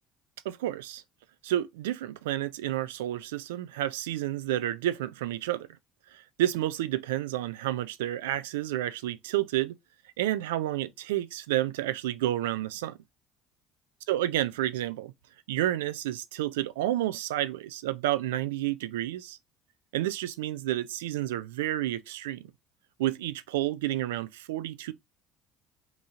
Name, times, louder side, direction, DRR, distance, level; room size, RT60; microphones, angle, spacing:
voice 1, 0.4-1.0 1.4-5.7 6.1-9.8 10.2-13.0 14.1-15.1 15.5-19.4 19.9-22.4 23.0-24.9, right 13 dB, 80° right, 0.3 m, -30 dB
2.9 x 2.6 x 3.5 m
hypercardioid pair, 60°, 0 cm